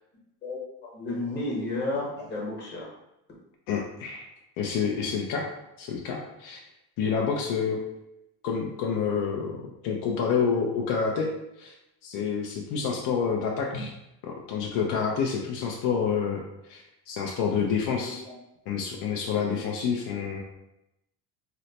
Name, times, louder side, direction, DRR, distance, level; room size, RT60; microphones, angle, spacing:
voice 1, 0.9-2.9 13.7-13.8 17.9-18.3 19.4-19.8, left 2 dB, 25° left, -4 dB, 1.1 m, -33 dB
voice 2, 3.7-4.3 4.6-5.5 5.8-6.6 7.0-7.8 8.4-11.3 11.6-11.7 12.0-13.9 14.3-18.2 18.7-20.4, left 6 dB, 60° left, 0 dB, 0.5 m, -28 dB
3.0 x 2.1 x 4.0 m, 0.87 s
cardioid pair, 155°, 37 cm